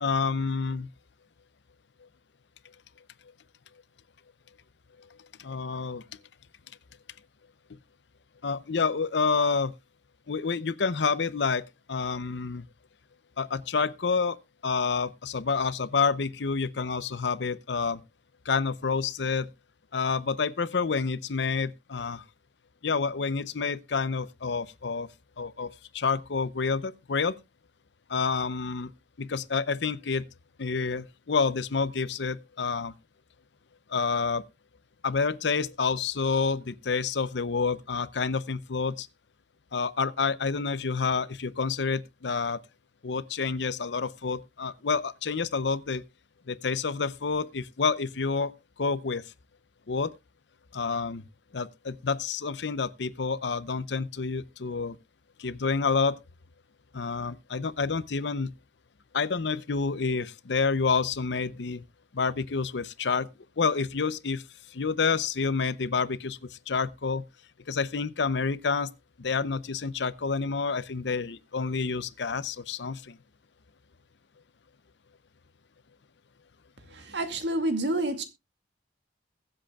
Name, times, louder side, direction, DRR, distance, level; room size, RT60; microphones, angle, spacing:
voice 1, 0.0-0.9 5.4-6.0 8.4-9.7 10.3-12.7 13.4-14.4 14.6-18.0 18.5-19.5 19.9-22.2 22.8-25.1 25.4-27.4 28.1-28.9 29.2-30.3 30.6-32.9 33.9-34.4 35.0-39.1 39.7-42.6 43.0-46.0 46.5-48.5 48.8-49.2 49.9-50.1 50.7-51.2 51.5-55.0 55.4-56.2 56.9-58.5 59.1-61.8 62.1-63.3 63.6-64.4 64.7-67.3 67.7-68.9 69.2-73.2, left 5 dB, 70° left, 0.7 m, -28 dB
voice 2, 76.9-78.2, right 1 dB, 70° right, 2.2 m, -28 dB
22.0 x 7.8 x 2.3 m
head